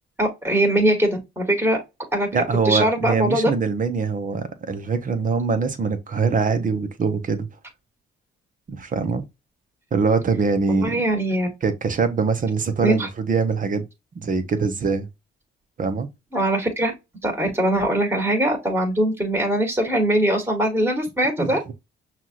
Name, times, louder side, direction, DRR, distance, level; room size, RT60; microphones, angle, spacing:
voice 1, 0.2-1.8 2.1-2.3 2.7-3.5 10.7-11.5 12.8-13.1 16.3-16.9 17.2-21.7, right 1 dB, 10° right, 1.8 m, -21 dB
voice 2, 2.3-7.5 8.7-9.2 9.9-11.0 11.6-13.8 14.1-15.1 15.8-16.1 21.4-21.5, right 5 dB, 45° right, 0.9 m, -23 dB
5.9 x 2.5 x 2.9 m
cardioid pair, 90°, 20 cm